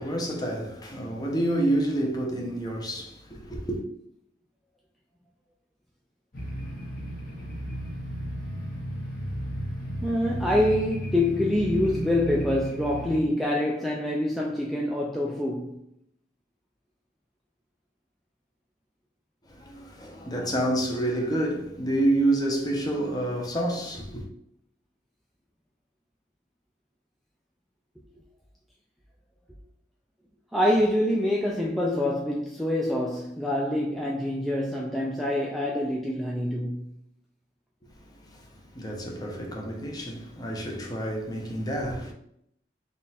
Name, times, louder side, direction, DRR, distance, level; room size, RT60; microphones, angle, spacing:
voice 1, 0.0-3.8 19.5-24.2 38.7-42.1, right 1 dB, 20° left, 0.8 m, -28 dB
sound 1, 6.3-13.2, equal, 50° left, 1.1 m, -34 dB
voice 2, 10.0-15.8 30.5-36.9, left 1 dB, ahead, 0.4 m, -26 dB
3.7 x 2.5 x 4.1 m
head